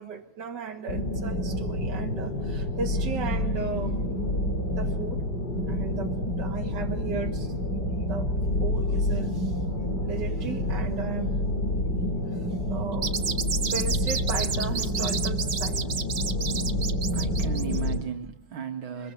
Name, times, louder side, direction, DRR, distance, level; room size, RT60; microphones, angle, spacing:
voice 1, 0.0-4.0 4.7-5.2 5.7-7.5 8.1-8.3 8.6-9.5 10.0-11.3 12.7-13.1 13.7-15.8 19.0-19.1, right 5 dB, 60° right, 2.5 m, -36 dB
sound 1, 0.9-18.0, left 1 dB, 55° left, 4.2 m, -28 dB
sound 2, 12.9-17.9, right 6 dB, 40° right, 1.1 m, -31 dB
voice 2, 16.2-16.7 17.1-19.1, right 7 dB, 75° right, 2.7 m, -36 dB
24.5 x 21.0 x 8.8 m
omnidirectional pair, 2.2 m